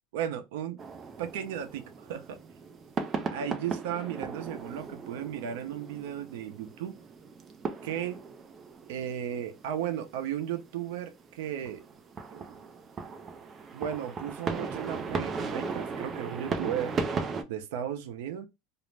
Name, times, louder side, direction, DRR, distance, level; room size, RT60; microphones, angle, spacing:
voice 1, 0.1-0.8 1.2-2.4 3.3-7.0 7.8-8.2 8.9-11.8 12.3-12.6 13.7-16.9 17.5-18.5, right 9 dB, 70° right, 0.5 m, -35 dB
sound 1, 0.8-17.4, right 4 dB, 20° right, 0.3 m, -37 dB
2.5 x 2.0 x 3.1 m
supercardioid pair, 180°, 0 cm